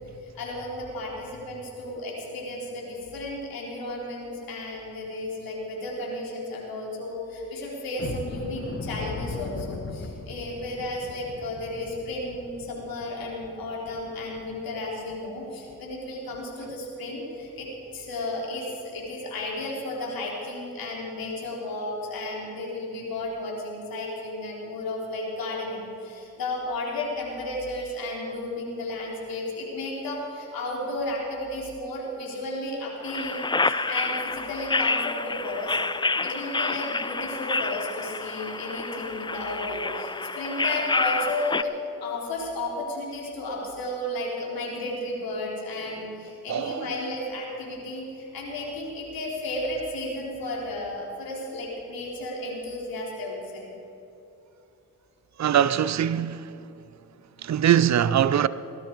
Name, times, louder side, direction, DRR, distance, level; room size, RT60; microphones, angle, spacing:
voice 1, 0.2-35.8 36.2-41.7 42.0-53.7, left 1 dB, 75° left, 3.5 m, -33 dB
sound 1, 8.0-14.7 15.1-15.2 15.6-15.8 16.3-16.5, left 4 dB, 40° left, 1.2 m, -38 dB
sound 2, 33.0-41.6, left 3 dB, 15° left, 0.4 m, -28 dB
voice 2, 46.5-46.9 55.4-56.5 57.4-58.5, right 9 dB, 50° right, 0.6 m, -22 dB
18.5 x 13.0 x 4.6 m
cardioid pair, 60°, 35 cm